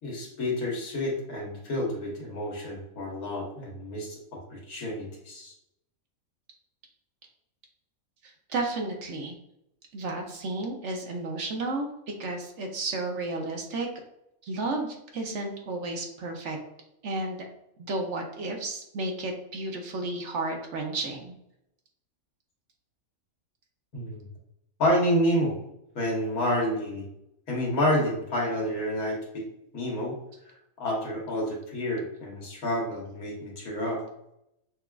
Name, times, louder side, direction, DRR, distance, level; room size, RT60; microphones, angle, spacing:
voice 1, 0.0-4.2 4.5-5.5 23.9-24.2 24.8-25.6 25.9-27.0 27.5-29.4 29.7-30.2 30.8-34.0, left 1 dB, 85° left, -2 dB, 1.7 m, -29 dB
voice 2, 8.5-9.3 9.9-11.9 12.2-13.9 14.4-16.6 17.0-17.5 17.8-21.3, right 2 dB, 65° right, 2 dB, 0.9 m, -32 dB
5.8 x 2.4 x 2.3 m, 0.80 s
omnidirectional pair, 1.5 m